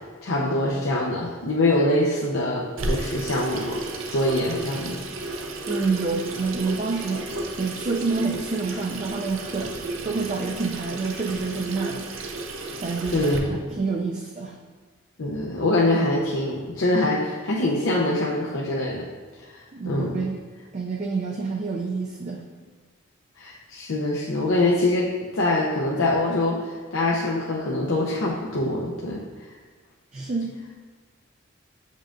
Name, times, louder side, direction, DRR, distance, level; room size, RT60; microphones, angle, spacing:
voice 1, 0.2-3.8 4.1-5.0 13.1-13.5 15.2-19.1 19.4-20.2 23.4-29.2, left 2 dB, 80° left, -4 dB, 0.7 m, -24 dB
Water tap faucet / Sink (filling or washing), 2.8-13.4, right 2 dB, 80° right, 0.6 m, -33 dB
voice 2, 5.7-7.2 7.6-9.8 10.0-12.0 12.8-14.6 19.7-20.3 20.7-22.5 30.1-30.6, right 4 dB, 35° right, 0 dB, 0.4 m, -28 dB
7.2 x 5.4 x 2.5 m, 1.5 s
head